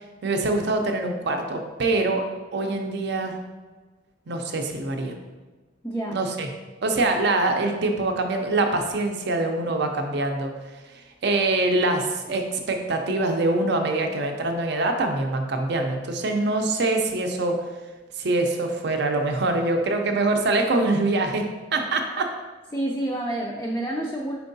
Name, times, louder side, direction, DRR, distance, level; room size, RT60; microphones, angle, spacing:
voice 1, 0.2-2.2 2.5-3.4 4.3-5.1 6.1-6.5 6.8-10.5 11.2-17.6 18.2-21.4 21.7-22.3, right 2 dB, 60° right, 4 dB, 0.5 m, -24 dB
voice 2, 5.8-6.2 22.7-24.4, right 1 dB, 15° left, -2 dB, 0.3 m, -28 dB
4.5 x 4.4 x 2.6 m, 1.3 s
head